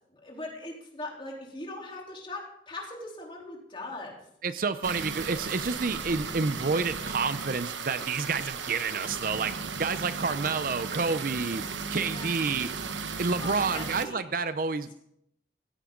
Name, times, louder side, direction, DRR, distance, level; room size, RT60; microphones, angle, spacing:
voice 1, 0.1-4.1 9.5-9.6 11.4-11.5 12.1-12.4 13.4-14.3, left 2 dB, 30° left, -1 dB, 3.5 m, -40 dB
voice 2, 4.4-11.6 11.9-12.7 13.2-14.9, right 4 dB, 50° right, 12 dB, 0.6 m, -29 dB
sound 1, 4.8-14.1, right 5 dB, 85° right, 1.0 m, -35 dB
16.5 x 15.5 x 3.8 m, 0.75 s
head